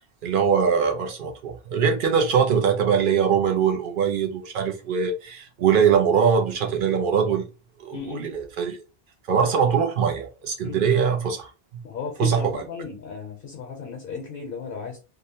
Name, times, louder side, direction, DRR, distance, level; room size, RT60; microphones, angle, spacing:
voice 1, 0.2-7.5 7.8-8.8 9.3-11.5 12.2-12.6, right 7 dB, 60° right, 0.8 m, -22 dB
voice 2, 7.9-8.3 10.6-10.9 11.8-15.0, left 5 dB, 65° left, 0.8 m, -35 dB
2.6 x 2.1 x 2.7 m
omnidirectional pair, 1.0 m